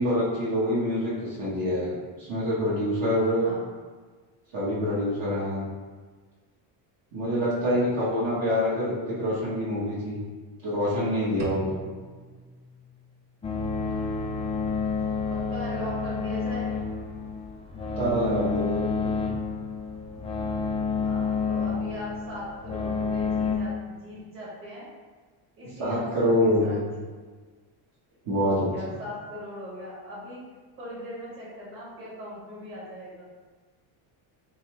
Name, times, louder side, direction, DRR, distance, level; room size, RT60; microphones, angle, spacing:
voice 1, 0.0-3.5 4.5-5.6 7.1-10.2 10.6-11.8 18.0-19.3 25.8-26.8 28.3-28.7, equal, 45° right, -9 dB, 1.3 m, -26 dB
voice 2, 3.4-3.8 15.3-16.7 21.0-24.9 25.6-26.8 28.4-30.4 30.8-33.2, equal, 25° right, -7 dB, 1.4 m, -39 dB
sound 1, 11.4-13.4, right 2 dB, 70° right, 0.8 m, -41 dB
sound 2, 13.4-23.6, left 5 dB, 15° left, 0.3 m, -29 dB
5.5 x 2.3 x 3.1 m, 1.4 s
cardioid pair, 145°, 47 cm